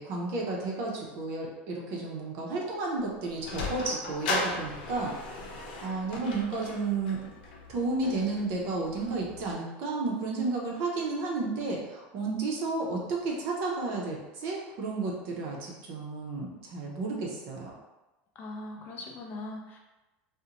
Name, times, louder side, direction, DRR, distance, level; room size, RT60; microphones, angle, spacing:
voice 1, 0.0-5.1 5.8-7.2 7.7-17.7, right 3 dB, 50° right, -2 dB, 0.5 m, -32 dB
Sliding door, 3.0-9.5, left 2 dB, 90° left, 0.6 m, -37 dB
voice 2, 18.4-19.8, left 2 dB, 35° left, 1 dB, 0.4 m, -40 dB
2.5 x 2.1 x 2.8 m, 1.0 s
supercardioid pair, 155°, 5 cm